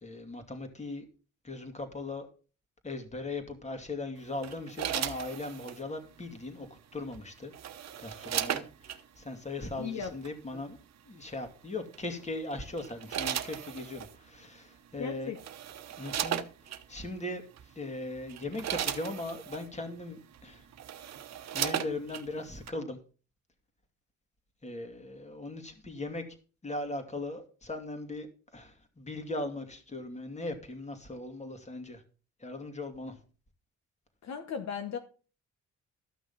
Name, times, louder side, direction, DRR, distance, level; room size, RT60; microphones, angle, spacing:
voice 1, 0.0-1.1 1.4-2.3 2.8-6.7 6.9-7.5 8.0-10.8 11.1-15.3 16.0-16.4 16.7-17.4 17.7-20.6 21.5-23.0 24.6-26.2 26.6-28.3 28.5-32.0 32.4-33.2, left 2 dB, 20° left, 6 dB, 2.4 m, -39 dB
sound 1, 4.4-5.8 7.1-9.0 10.0-10.3 11.9-12.2 12.8-14.1 14.9-15.0 15.3-16.8 17.6-17.7 18.2-19.7 20.3-20.4 20.7-22.3 22.7-22.8, right 10 dB, 60° right, 1.1 m, -36 dB
voice 2, 9.8-10.1 10.5-10.6 15.0-15.4 34.2-35.0, left 6 dB, 60° left, 7 dB, 1.2 m, -36 dB
13.0 x 6.0 x 5.5 m, 0.37 s
cardioid pair, 90°, 30 cm